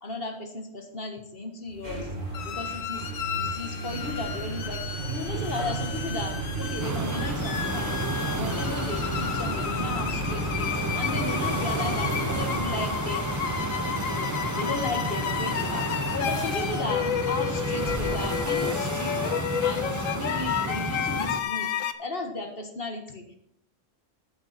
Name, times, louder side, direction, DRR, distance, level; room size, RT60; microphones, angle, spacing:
voice 1, 0.0-2.1 2.4-8.1 8.4-13.3 14.0-19.2 19.6-21.7 22.0-23.4, left 2 dB, 45° left, 5 dB, 1.8 m, -35 dB
sound 1, 1.7-18.8, right 2 dB, 40° right, 2.3 m, -35 dB
sound 2, 2.3-21.9, left 9 dB, 80° left, 1.2 m, -32 dB
sound 3, 6.8-21.4, right 2 dB, 15° right, 0.7 m, -32 dB
14.5 x 8.9 x 4.3 m, 0.70 s
omnidirectional pair, 1.4 m